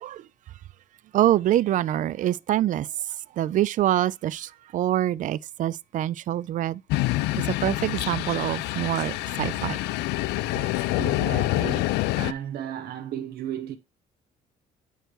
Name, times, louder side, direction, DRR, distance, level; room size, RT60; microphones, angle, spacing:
voice 1, 1.1-2.9 3.4-6.8 7.6-9.8, right 13 dB, 50° right, 0.4 m, -25 dB
sound 1, 6.9-12.3, left 18 dB, 85° left, 0.4 m, -26 dB
voice 2, 11.0-13.8, right 10 dB, 65° right, 1.1 m, -35 dB
8.9 x 3.3 x 4.5 m
cardioid pair, 110°, 17 cm